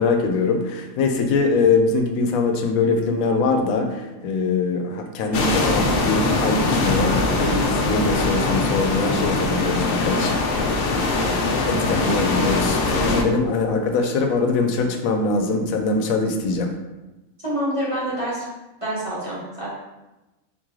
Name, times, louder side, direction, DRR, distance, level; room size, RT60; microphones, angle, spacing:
voice 1, 0.0-11.4 11.7-16.7, left 3 dB, 90° left, 5 dB, 1.0 m, -23 dB
sound 1, 5.3-13.2, left 3 dB, 60° left, 0.6 m, -22 dB
voice 2, 17.4-18.4 18.8-19.7, right 1 dB, 25° right, -8 dB, 1.5 m, -26 dB
4.2 x 3.1 x 3.7 m, 1.0 s
omnidirectional pair, 1.4 m